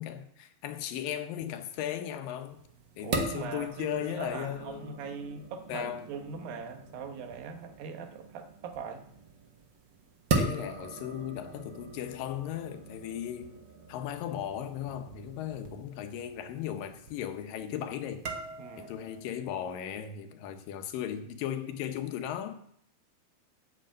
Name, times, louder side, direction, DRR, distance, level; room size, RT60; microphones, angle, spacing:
voice 1, 0.0-2.6 3.0-4.9 5.7-6.1 10.3-13.6 13.9-18.3 18.8-22.6, left 10 dB, 85° left, 2.6 m, -36 dB
sound 1, 2.5-19.2, right 3 dB, 75° right, 1.0 m, -39 dB
voice 2, 3.0-9.0 18.6-18.9, right 5 dB, 90° right, 2.9 m, -41 dB
9.0 x 7.3 x 7.6 m
omnidirectional pair, 3.9 m